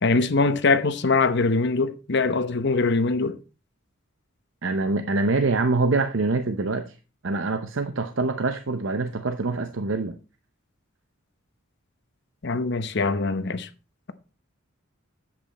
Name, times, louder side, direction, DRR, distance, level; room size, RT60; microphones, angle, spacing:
voice 1, 0.0-3.4 12.4-13.7, left 3 dB, 55° left, 0.9 m, -22 dB
voice 2, 4.6-7.0 7.2-10.2, right 3 dB, 65° right, 0.7 m, -25 dB
10.5 x 7.9 x 4.2 m
head